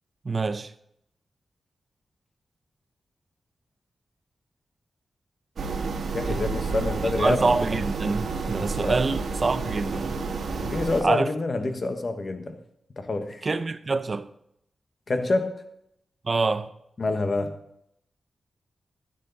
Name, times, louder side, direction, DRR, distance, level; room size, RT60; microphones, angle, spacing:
voice 1, 0.2-0.7 6.2-6.4 7.2-10.2 11.0-11.3 13.4-14.3 16.2-16.7, right 3 dB, 50° right, 0.8 m, -26 dB
sound 1, 5.6-11.0, right 4 dB, 75° right, 1.5 m, -30 dB
voice 2, 6.1-7.5 8.8-9.0 10.5-12.6 13.0-13.4 15.1-15.6 17.0-17.5, left 2 dB, 55° left, 1.4 m, -27 dB
13.5 x 9.5 x 4.1 m
cardioid pair, 50°, 0 cm